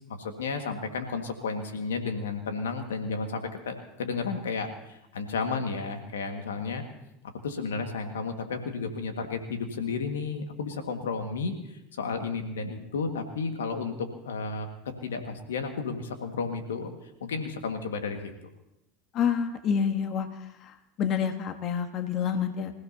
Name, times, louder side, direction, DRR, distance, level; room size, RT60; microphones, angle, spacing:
voice 1, 0.0-6.8 7.4-13.9 14.2-14.7 15.0-16.9 17.2-18.3, left 4 dB, 85° left, 5 dB, 1.8 m, -32 dB
voice 2, 19.1-22.7, left 7 dB, 50° left, 7 dB, 1.3 m, -28 dB
26.5 x 15.5 x 2.8 m, 0.84 s
hypercardioid pair, 85°, 0 cm